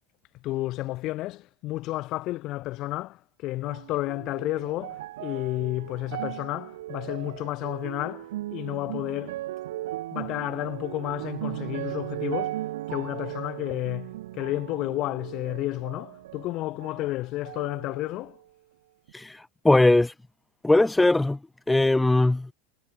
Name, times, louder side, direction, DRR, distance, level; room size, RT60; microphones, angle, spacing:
voice 1, 0.4-9.4 10.1-18.4, left 17 dB, 45° left, 1.9 m, -31 dB
sound 1, 3.6-17.1 17.4-18.4 19.1-19.2, right 15 dB, 85° right, 3.3 m, -37 dB
voice 2, 19.1-20.1 20.6-21.4 21.7-22.5, left 2 dB, 5° left, 0.7 m, -20 dB
supercardioid pair, 140°, 0 cm